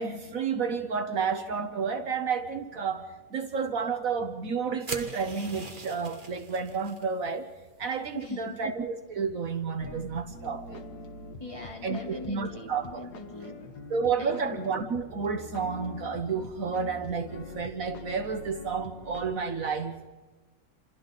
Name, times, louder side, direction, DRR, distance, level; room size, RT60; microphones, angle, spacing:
voice 1, 0.0-7.5 7.8-10.8 11.8-13.1 13.9-19.9, right 5 dB, 60° right, 8 dB, 1.4 m, -31 dB
sound 1, 4.9-7.0, right 3 dB, 30° right, 1.7 m, -41 dB
voice 2, 8.1-8.6 11.4-13.6 14.2-14.7, left 2 dB, 20° left, -1 dB, 3.5 m, -41 dB
sound 2, 9.8-19.3, left 3 dB, 85° left, 1.8 m, -44 dB
28.5 x 27.5 x 4.0 m, 1.3 s
omnidirectional pair, 1.7 m